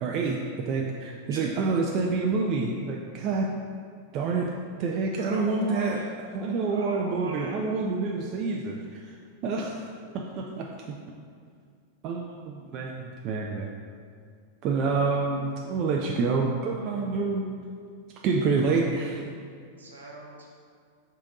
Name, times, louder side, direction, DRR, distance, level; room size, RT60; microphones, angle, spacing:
voice 1, 0.0-3.5 4.1-4.5 4.8-6.0 6.3-9.1 9.4-9.9 10.1-11.0 12.0-13.7 14.6-17.5 18.2-19.3, right 4 dB, 40° right, -1 dB, 0.3 m, -27 dB
voice 2, 5.2-6.0 6.7-7.6 19.8-20.6, right 2 dB, 70° right, -3 dB, 0.9 m, -41 dB
4.9 x 2.7 x 3.9 m, 2.2 s
figure-of-eight pair, 90°, 0 cm